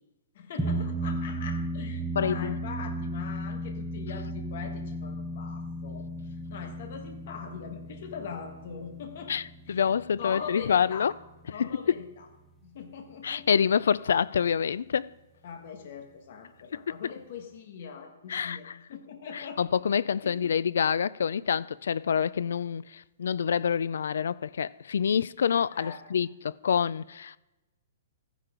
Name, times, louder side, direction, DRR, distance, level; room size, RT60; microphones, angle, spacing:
voice 1, 0.3-6.1 6.5-9.3 9.7-9.8 10.2-11.1 11.5-12.2 12.6-13.5 15.4-19.6 20.2-20.3 25.7-26.0, left 6 dB, 50° left, 1.6 m, -42 dB
sound 1, 0.6-11.3, right 1 dB, 5° right, 0.8 m, -35 dB
voice 2, 2.2-2.6 9.3-9.4 9.7-11.1 11.6-11.7 13.2-15.1 16.7-16.9 18.3-18.7 19.3-27.4, left 7 dB, 80° left, 0.3 m, -27 dB
14.0 x 10.0 x 3.8 m
hypercardioid pair, 175°, 0 cm